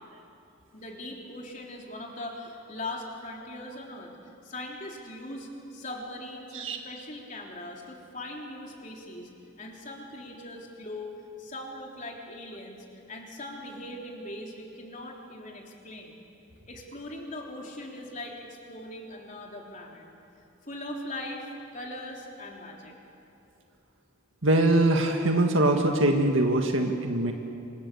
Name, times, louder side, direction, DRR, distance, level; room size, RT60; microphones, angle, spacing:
voice 1, 0.7-4.1 4.4-9.3 9.6-11.1 11.4-16.2 16.7-20.1 20.7-22.9, left 1 dB, 40° left, 0 dB, 3.6 m, -40 dB
voice 2, 24.4-27.3, right 1 dB, 75° right, 3 dB, 1.8 m, -23 dB
27.0 x 26.5 x 7.0 m, 2.8 s
head